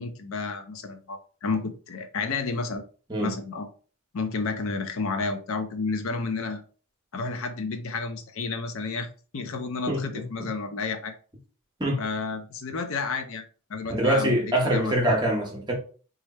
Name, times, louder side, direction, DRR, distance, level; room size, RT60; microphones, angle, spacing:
voice 1, 0.0-2.8 3.2-3.7 4.1-6.6 7.1-9.1 9.3-11.1 12.0-13.4 13.7-14.9, left 4 dB, 65° left, 0.5 m, -31 dB
voice 2, 13.9-15.7, right 1 dB, 20° right, 0.9 m, -24 dB
3.2 x 2.4 x 4.1 m
head